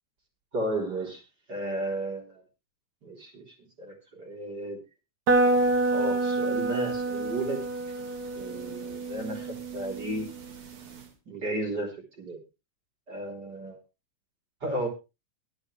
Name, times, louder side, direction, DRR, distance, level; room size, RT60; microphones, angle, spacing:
voice 1, 0.5-1.2 1.5-2.4 3.0-3.4 3.8-4.8 5.9-7.6 8.4-10.3 11.3-12.4 13.1-13.8 14.6-14.9, right 1 dB, 25° right, 1 dB, 3.5 m, -33 dB
sound 1, 5.3-11.0, right 2 dB, 45° right, 2.6 m, -28 dB
22.5 x 7.8 x 3.2 m, 0.27 s
omnidirectional pair, 5.8 m